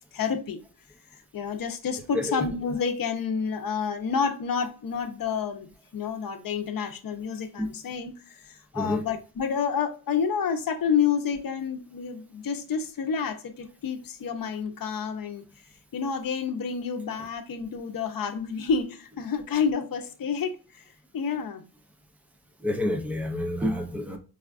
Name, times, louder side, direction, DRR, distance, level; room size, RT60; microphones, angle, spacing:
voice 1, 0.1-0.6 1.3-5.7 5.9-15.4 15.9-20.8 21.1-21.6, left 6 dB, 65° left, 0.7 m, -29 dB
voice 2, 2.1-2.5 7.6-7.7 8.7-9.1 22.6-24.2, left 1 dB, 5° right, 0.6 m, -28 dB
4.8 x 2.3 x 2.4 m
wide cardioid pair, 130°, 37 cm